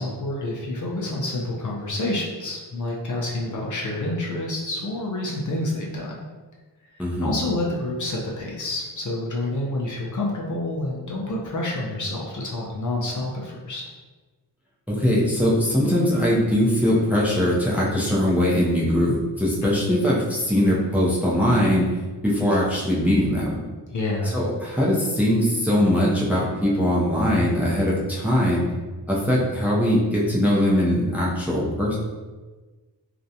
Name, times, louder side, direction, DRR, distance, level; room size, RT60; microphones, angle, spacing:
voice 1, 0.0-6.2 7.2-13.8 19.6-19.9 23.9-24.4, left 2 dB, 45° left, -3 dB, 0.6 m, -28 dB
voice 2, 7.0-7.3 14.9-21.9 22.2-23.6 24.3-28.7 29.1-32.0, equal, 5° right, -6 dB, 0.5 m, -21 dB
2.5 x 2.1 x 2.7 m, 1.3 s
cardioid pair, 70°, 43 cm